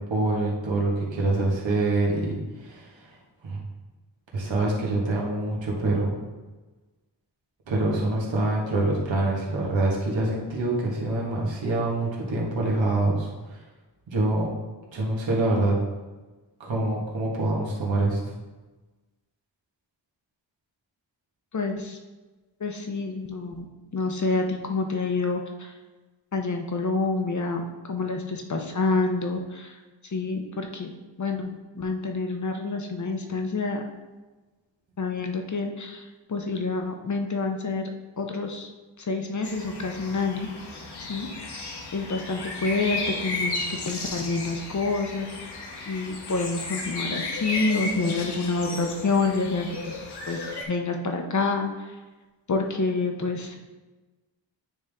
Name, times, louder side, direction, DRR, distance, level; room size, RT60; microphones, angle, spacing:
voice 1, 0.1-3.1 3.4-3.6 4.3-6.1 7.7-13.6 14.1-14.5 14.9-15.7 16.6-18.2, right 2 dB, 85° right, -3 dB, 1.6 m, -25 dB
voice 2, 21.5-22.0 22.6-23.7 23.9-25.7 26.3-29.8 30.1-30.9 31.2-33.8 35.0-37.9 38.2-38.7 39.0-40.5 41.0-45.5 45.8-49.9 50.3-51.9 52.5-53.7, left 3 dB, 40° left, 3 dB, 0.7 m, -28 dB
sound 1, 39.4-50.6, left 3 dB, 60° left, 1.0 m, -34 dB
9.1 x 3.6 x 3.5 m, 1.2 s
wide cardioid pair, 165°, 44 cm